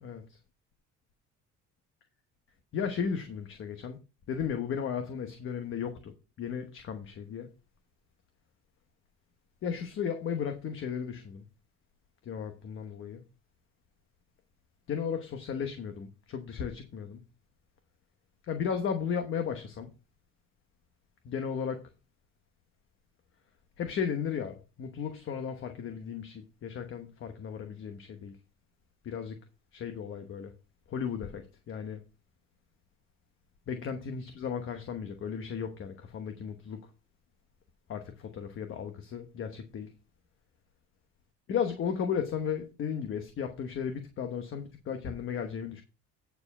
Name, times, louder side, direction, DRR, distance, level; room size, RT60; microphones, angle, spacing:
voice 1, 2.7-4.0 4.3-6.1 6.4-7.5 9.6-11.4 12.3-13.2 14.9-17.2 18.5-19.9 21.2-21.8 23.8-28.3 29.0-29.4 29.7-30.5 30.9-31.4 31.7-32.0 33.7-36.8 37.9-39.9 41.5-45.8, left 7 dB, 40° left, 1.1 m, -35 dB
9.5 x 4.6 x 5.4 m
cardioid pair, 170°, 31 cm